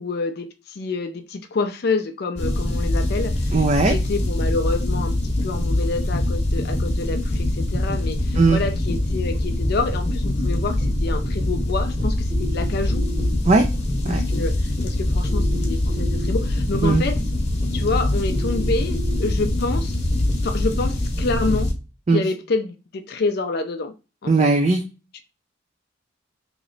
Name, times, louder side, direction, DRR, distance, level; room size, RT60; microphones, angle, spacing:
voice 1, 0.0-13.0 14.1-17.2 17.7-20.1 20.4-21.7 22.1-23.9 24.2-24.5 25.1-25.2, left 3 dB, 50° left, 0.4 m, -28 dB
sound 1, 2.4-21.7, left 1 dB, 30° left, 0.9 m, -23 dB
voice 2, 3.5-3.9 8.4-8.6 13.5-13.7 14.0-14.2 16.8-17.0 22.1-22.2 24.3-24.8, right 3 dB, 35° right, 0.3 m, -17 dB
sound 2, 12.3-13.3 15.3-16.3 18.3-19.3, right 1 dB, 60° right, 1.7 m, -35 dB
3.0 x 3.0 x 3.8 m
head